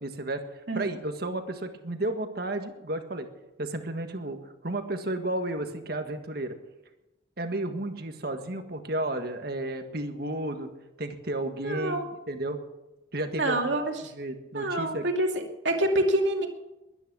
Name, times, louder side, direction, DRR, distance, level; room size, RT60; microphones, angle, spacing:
voice 1, 0.0-3.3 3.6-4.4 4.6-6.6 7.4-10.7 11.0-12.6 13.1-13.7 14.1-15.0, right 1 dB, 50° right, 6 dB, 1.7 m, -32 dB
voice 2, 11.6-12.1 13.3-14.1 14.5-15.3 15.6-16.5, right 1 dB, 70° right, 2 dB, 2.5 m, -26 dB
22.0 x 10.0 x 6.3 m, 1.0 s
head